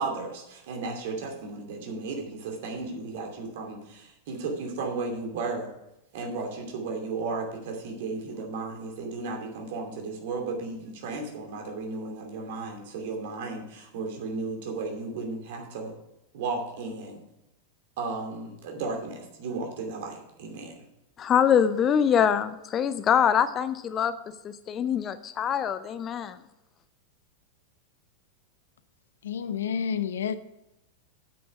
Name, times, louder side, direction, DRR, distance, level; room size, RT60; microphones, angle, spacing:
voice 1, 0.0-5.7 6.1-15.9 16.3-17.2 18.0-20.8, right 3 dB, 50° right, 2.7 m, -34 dB
voice 2, 21.2-26.4, left 8 dB, 30° left, 0.5 m, -24 dB
voice 3, 29.2-30.4, left 7 dB, 65° left, 0.7 m, -29 dB
9.1 x 8.7 x 4.9 m
figure-of-eight pair, 90°, 0 cm